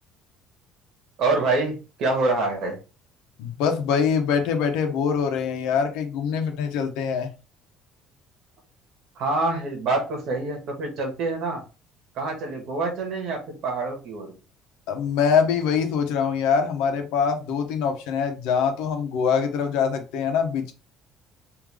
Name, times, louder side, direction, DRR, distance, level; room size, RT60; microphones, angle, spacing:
voice 1, 1.2-2.8 9.1-11.6 12.1-14.3, right 3 dB, 55° right, 1.5 m, -26 dB
voice 2, 3.4-7.3 14.9-20.7, left 6 dB, 85° left, 0.9 m, -24 dB
3.7 x 2.8 x 3.2 m
cardioid pair, 160°, 0 cm